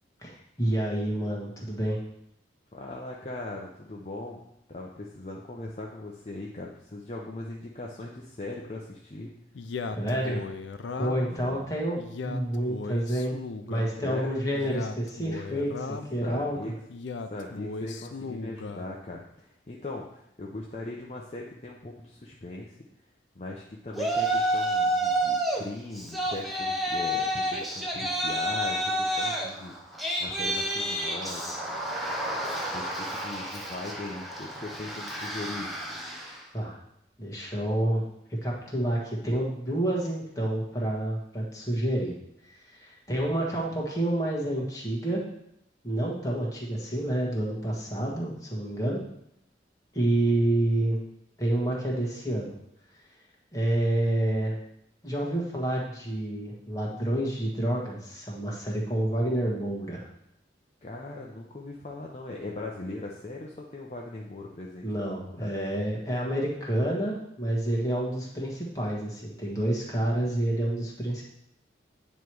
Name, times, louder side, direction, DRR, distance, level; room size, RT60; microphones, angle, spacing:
voice 1, 0.2-2.0 9.9-10.4 11.0-12.0 12.2-13.4 13.7-16.6 36.5-36.8 37.2-38.0 38.4-42.1 42.4-45.2 45.8-49.0 49.9-51.0 51.4-52.5 53.5-54.6 55.0-60.1 64.8-71.2, right 1 dB, 20° left, -4 dB, 1.4 m, -28 dB
voice 2, 2.7-4.4 4.7-9.3 11.4-11.6 14.0-14.3 16.2-16.7 17.3-22.8 23.3-29.9 30.2-31.8 32.6-35.7 60.8-65.5, left 2 dB, 35° left, -2 dB, 0.6 m, -39 dB
Male speech man speaking, 9.5-11.4 11.9-13.9 14.5-16.2 16.9-18.9, left 4 dB, 85° left, 0.5 m, -37 dB
Yell, 23.9-25.6 25.9-36.4, right 1 dB, ahead, 0.7 m, -30 dB
9.0 x 3.1 x 4.7 m, 0.78 s
head